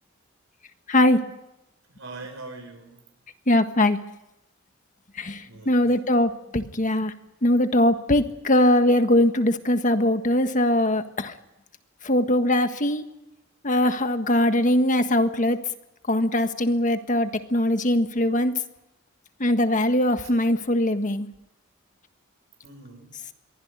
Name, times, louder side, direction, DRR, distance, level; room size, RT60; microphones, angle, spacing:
voice 1, 0.9-1.2 3.5-4.0 5.2-7.1 7.4-11.3 12.0-13.0 13.6-15.6 16.1-18.5 19.4-21.3, left 1 dB, 40° left, 8 dB, 1.5 m, -21 dB
voice 2, 1.9-3.0 5.4-5.9 22.6-23.1, right 3 dB, 75° right, 4 dB, 5.2 m, -42 dB
23.0 x 16.0 x 9.6 m, 0.87 s
head